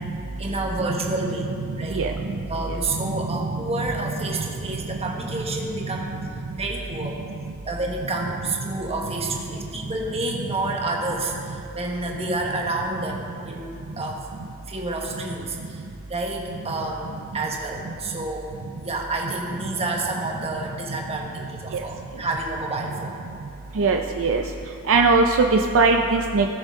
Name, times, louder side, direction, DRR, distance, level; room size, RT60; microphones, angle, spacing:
voice 1, 0.4-1.5 1.8-2.0 2.5-6.1 6.6-7.2 7.6-14.2 14.7-15.8 16.1-18.5 18.8-23.1, right 2 dB, 25° right, 0 dB, 1.3 m, -29 dB
voice 2, 23.8-24.4 24.9-26.5, right 4 dB, 60° right, 3 dB, 0.5 m, -19 dB
17.5 x 6.6 x 3.7 m, 2.7 s
head